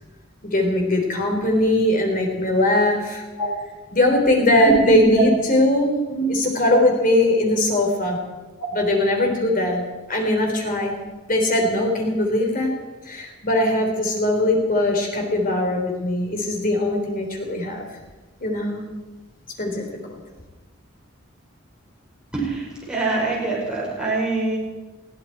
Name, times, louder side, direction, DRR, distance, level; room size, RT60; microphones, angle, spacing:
voice 1, 0.4-3.2 3.9-8.2 8.7-10.9 11.3-12.7 13.1-17.8 18.4-18.8 19.6-20.2, left 1 dB, 45° left, 2 dB, 3.6 m, -20 dB
voice 2, 4.5-5.3 6.1-6.2 22.3-24.6, right 2 dB, 5° right, -5 dB, 5.3 m, -23 dB
20.5 x 15.0 x 4.6 m, 1.2 s
head